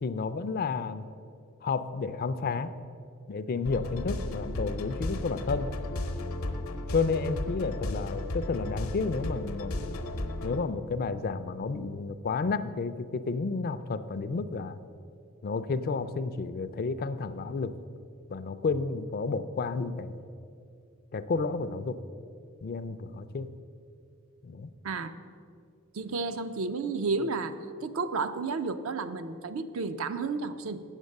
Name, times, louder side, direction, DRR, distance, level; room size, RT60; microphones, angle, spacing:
voice 1, 0.0-1.1 1.6-2.7 3.3-5.7 6.9-9.8 10.4-14.8 15.4-17.7 18.3-20.2 21.1-22.0 22.6-23.5 24.4-24.7, left 4 dB, 45° left, 13 dB, 0.4 m, -31 dB
sound 1, 3.6-10.6, left 1 dB, 80° left, 0.8 m, -34 dB
voice 2, 25.9-27.5 27.8-30.8, right 4 dB, 65° right, 10 dB, 0.5 m, -32 dB
8.1 x 7.3 x 6.4 m, 2.4 s
head